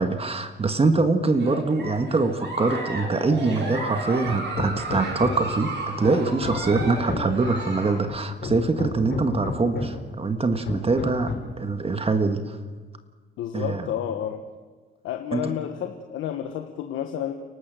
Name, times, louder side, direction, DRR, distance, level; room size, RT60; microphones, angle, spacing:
voice 1, 0.0-12.6 13.5-13.9 15.3-15.5, right 3 dB, 30° right, 8 dB, 1.7 m, -24 dB
Giggle, 1.3-8.0, right 2 dB, 65° right, 6.6 m, -33 dB
Hammer, 4.2-5.6 6.0-7.4 8.1-10.1 10.7-11.6, left 5 dB, 70° left, 4.4 m, -33 dB
voice 2, 13.4-14.4 15.0-17.3, left 10 dB, 85° left, 6 dB, 1.3 m, -30 dB
29.5 x 12.0 x 7.6 m, 1.4 s
cardioid pair, 90°, 20 cm